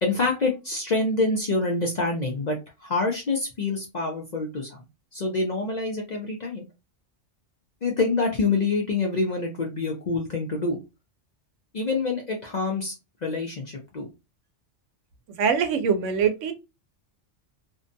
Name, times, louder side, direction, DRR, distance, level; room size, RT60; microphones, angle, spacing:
voice 1, 0.0-4.8 5.1-6.6 7.8-10.8 11.7-12.9 13.2-14.1, left 3 dB, 50° left, 0.5 m, -26 dB
voice 2, 15.4-16.5, right 6 dB, 80° right, 0.9 m, -23 dB
2.7 x 2.2 x 2.5 m
omnidirectional pair, 1.3 m